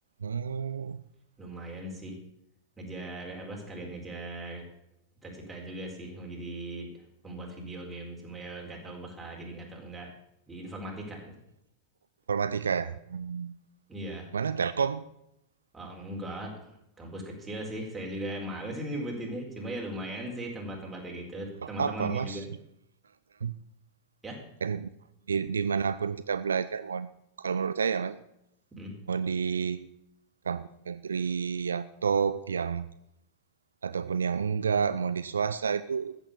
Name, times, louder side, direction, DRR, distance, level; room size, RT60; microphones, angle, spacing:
voice 1, 0.2-1.0 12.3-13.5 14.3-15.1 21.6-22.4 23.4-23.6 24.6-24.9 25.3-27.1 27.4-28.2 29.1-29.9 30.5-32.9 33.8-36.2, right 6 dB, 70° right, 14 dB, 0.4 m, -30 dB
voice 2, 1.4-2.2 2.8-4.6 5.2-10.1 10.5-11.4 13.9-14.3 15.7-16.7 17.0-22.5 24.2-24.4 28.7-28.9, right 1 dB, 10° right, -1 dB, 4.2 m, -38 dB
14.0 x 8.0 x 6.8 m, 0.80 s
figure-of-eight pair, 90°, 0 cm